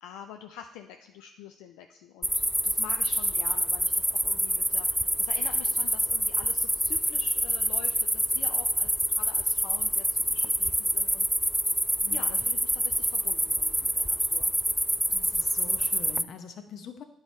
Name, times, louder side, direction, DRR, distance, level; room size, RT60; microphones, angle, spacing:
voice 1, 0.0-8.9 9.2-11.3 12.1-14.5, left 9 dB, 85° left, 6 dB, 0.4 m, -46 dB
sound 1, 2.2-16.2, equal, 5° right, 0.3 m, -27 dB
voice 2, 12.0-12.4 15.1-17.0, left 6 dB, 65° left, 8 dB, 0.8 m, -44 dB
9.6 x 4.9 x 4.1 m, 0.77 s
supercardioid pair, 60°, 0 cm